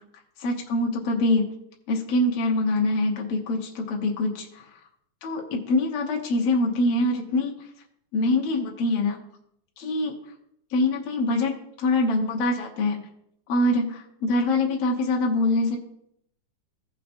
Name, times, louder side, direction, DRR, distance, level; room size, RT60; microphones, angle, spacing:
voice 1, 0.4-1.5 1.9-4.5 5.2-7.5 8.1-9.2 9.8-10.2 10.7-13.0 13.5-15.8, left 2 dB, 60° left, 0 dB, 1.8 m, -24 dB
16.0 x 5.6 x 2.6 m, 0.75 s
omnidirectional pair, 3.7 m